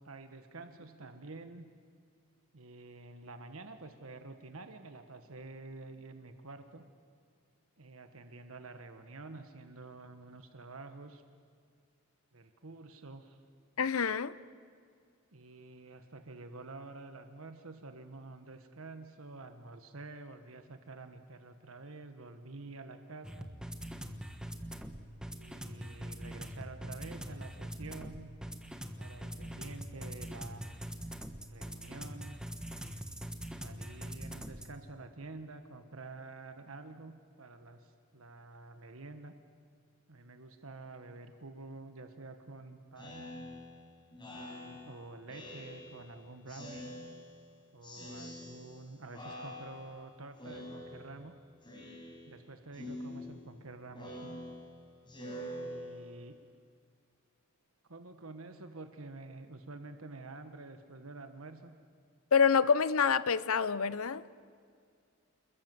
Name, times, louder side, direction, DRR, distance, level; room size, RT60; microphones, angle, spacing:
voice 1, 0.0-1.7 2.5-6.9 7.8-11.2 12.3-13.4 15.3-23.5 25.3-28.3 29.0-30.7 31.5-32.4 33.6-39.3 40.1-43.3 44.3-47.0 47.7-51.3 52.2-54.3 55.6-56.4 57.9-61.7, right 3 dB, 70° right, 1.4 m, -48 dB
voice 2, 13.8-14.3 62.3-64.2, left 6 dB, 75° left, 0.7 m, -27 dB
sound 1, 23.2-34.7, right 1 dB, 5° right, 1.3 m, -43 dB
Speech synthesizer, 43.0-46.1 46.5-47.5 47.8-48.8 49.1-50.0 50.4-51.3 51.6-52.4 52.7-56.3, left 1 dB, 20° left, 5.3 m, -46 dB
28.5 x 21.5 x 7.7 m
head